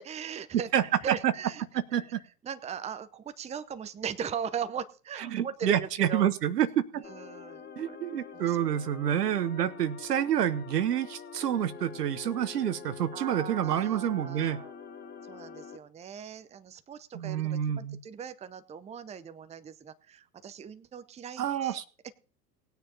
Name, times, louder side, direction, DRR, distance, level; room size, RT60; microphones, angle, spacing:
voice 1, 0.0-1.6 2.0-2.1 2.4-6.2 7.1-8.0 8.3-8.6 13.1-14.7 15.3-21.8, right 7 dB, 15° right, 12 dB, 0.7 m, -39 dB
voice 2, 0.7-1.3 1.7-2.2 5.3-7.0 7.8-14.6 17.1-18.0 21.4-21.8, right 10 dB, 75° right, 13 dB, 1.2 m, -28 dB
sound 1, 7.0-15.8, left 6 dB, 20° left, 1.3 m, -45 dB
19.5 x 9.4 x 2.8 m, 0.39 s
figure-of-eight pair, 85°, 49 cm